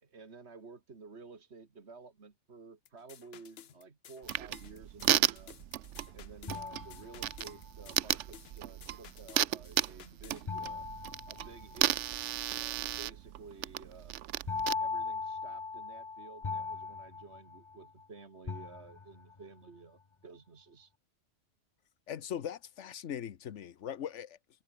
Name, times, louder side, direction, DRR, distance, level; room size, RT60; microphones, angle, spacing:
voice 1, 0.1-5.6 6.1-10.9 11.3-12.0 12.5-14.2 14.8-20.9, right 4 dB, 65° right, 2.3 m, -52 dB
sound 1, 2.8-10.5, left 9 dB, 60° left, 1.0 m, -55 dB
sound 2, 4.2-14.7, right 12 dB, 85° right, 1.0 m, -34 dB
sound 3, 6.5-7.7 10.5-12.1 14.5-18.0 18.5-19.4, left 4 dB, 30° left, 0.8 m, -39 dB
voice 2, 22.1-24.4, left 9 dB, 80° left, 1.3 m, -40 dB
omnidirectional pair, 1.2 m